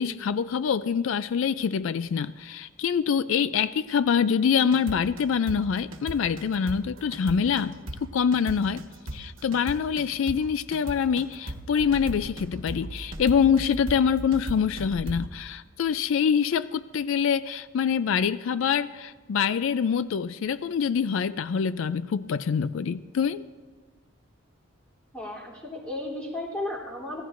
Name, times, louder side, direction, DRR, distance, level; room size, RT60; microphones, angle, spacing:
voice 1, 0.0-8.8 9.1-23.4, left 7 dB, 70° left, 15 dB, 0.3 m, -25 dB
sound 1, 4.6-15.3, right 1 dB, 70° right, 1.3 m, -37 dB
voice 2, 25.1-27.2, left 1 dB, 5° left, -5 dB, 3.1 m, -34 dB
25.0 x 17.0 x 2.5 m, 1.5 s
head